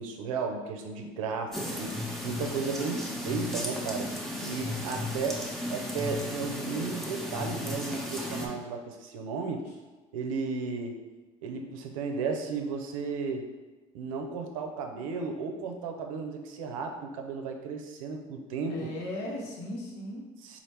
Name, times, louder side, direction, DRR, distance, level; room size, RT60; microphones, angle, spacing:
voice 1, 0.0-2.0 2.2-4.1 4.4-5.4 5.7-9.7 10.1-11.0 11.4-13.5 13.9-18.9 20.4-20.6, right 4 dB, 80° right, 4 dB, 0.5 m, -34 dB
sound 1, 1.5-8.5, left 1 dB, ahead, 0.9 m, -35 dB
voice 2, 4.4-4.8 18.7-20.3, left 1 dB, 70° left, -1 dB, 1.0 m, -38 dB
4.1 x 2.5 x 3.3 m, 1.2 s
hypercardioid pair, 65°, 17 cm